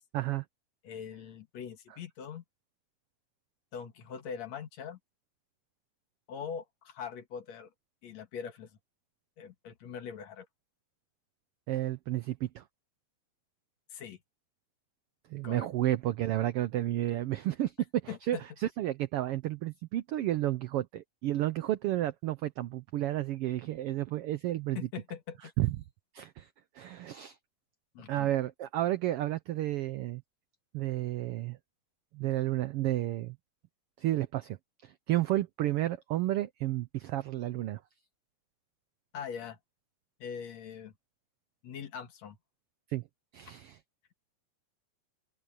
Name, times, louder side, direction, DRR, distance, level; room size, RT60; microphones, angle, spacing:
voice 1, 0.1-0.4 11.7-12.6 15.3-17.7 18.0-24.8 25.6-25.8 26.1-26.5 26.7-27.4 28.1-30.2 30.7-31.6 32.1-33.4 34.0-34.6 34.8-37.8 42.9-43.0 43.3-43.8, right 14 dB, 85° right, 1.2 m, -31 dB
voice 2, 0.8-2.4 3.7-5.0 6.3-7.7 8.0-8.7 9.4-10.5 13.9-14.2 15.4-15.7 18.1-18.4 24.7-25.5 27.9-28.3 39.1-39.6 40.2-40.9 41.6-42.4, left 7 dB, 65° left, 2.8 m, -42 dB
omnidirectional pair, 3.4 m